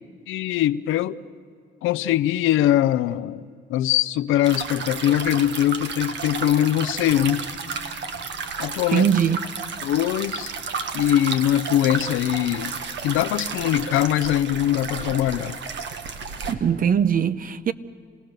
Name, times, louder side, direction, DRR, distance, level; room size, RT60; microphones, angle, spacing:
voice 1, 0.3-1.2 1.8-7.4 8.6-9.1 9.8-10.5 10.9-12.7 13.0-15.6, left 12 dB, 90° left, 0.6 m, -22 dB
sound 1, 4.4-16.5, right 5 dB, 65° right, 1.5 m, -32 dB
sound 2, 7.1-11.1, right 1 dB, 85° right, 6.8 m, -50 dB
voice 2, 8.9-9.4 16.5-17.7, right 8 dB, 45° right, 0.8 m, -21 dB
27.0 x 18.0 x 6.6 m
cardioid pair, 90°, 20 cm